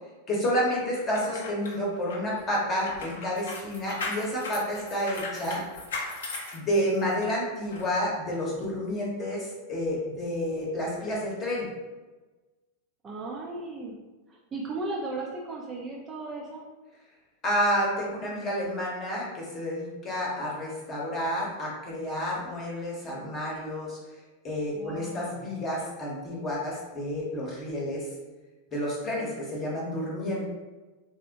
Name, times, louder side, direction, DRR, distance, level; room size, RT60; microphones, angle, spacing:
voice 1, 0.3-5.6 6.5-11.7 17.4-24.0 24.4-28.1 28.7-30.4, equal, 25° left, -3 dB, 0.9 m, -30 dB
sound 1, 1.0-7.2 7.7-7.9, left 3 dB, 65° left, 0.5 m, -38 dB
voice 2, 13.0-14.0 14.3-16.6 24.7-25.5, right 2 dB, 20° right, -3 dB, 0.4 m, -36 dB
3.3 x 2.0 x 2.8 m, 1.2 s
figure-of-eight pair, 90°, 0 cm